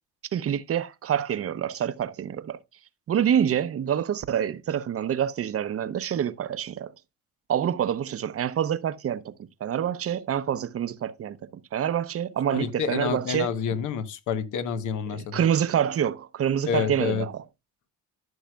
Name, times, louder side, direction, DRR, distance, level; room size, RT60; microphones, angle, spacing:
voice 1, 0.3-2.6 3.1-6.9 7.5-9.3 9.6-11.4 11.7-13.5 15.3-17.3, right 9 dB, 50° right, 0.7 m, -26 dB
voice 2, 12.5-15.4 16.7-17.3, left 7 dB, 80° left, 1.1 m, -28 dB
14.0 x 6.3 x 2.3 m
cardioid pair, 90°, 30 cm